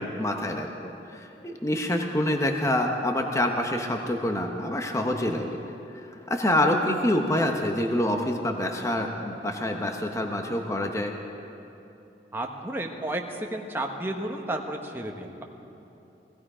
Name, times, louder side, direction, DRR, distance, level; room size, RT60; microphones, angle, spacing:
voice 1, 0.0-5.5 6.0-11.1, left 1 dB, 15° left, 3 dB, 0.9 m, -26 dB
voice 2, 12.3-15.4, right 1 dB, 15° right, 2 dB, 1.1 m, -32 dB
19.0 x 15.5 x 4.9 m, 2.9 s
head